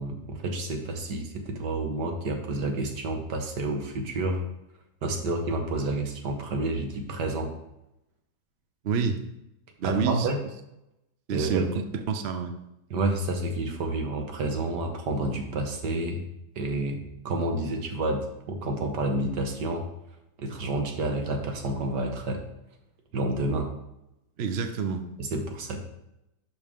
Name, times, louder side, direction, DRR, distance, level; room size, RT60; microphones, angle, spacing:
voice 1, 0.0-4.4 5.0-7.5 9.8-10.4 11.3-11.7 12.9-16.2 16.6-19.8 20.4-22.4 23.1-23.7 25.2-25.8, right 2 dB, 75° right, 3 dB, 1.8 m, -29 dB
voice 2, 8.8-9.2 9.8-10.3 11.3-12.5 24.4-25.0, right 5 dB, 50° right, 7 dB, 0.8 m, -28 dB
11.5 x 5.4 x 3.7 m, 0.88 s
omnidirectional pair, 1.9 m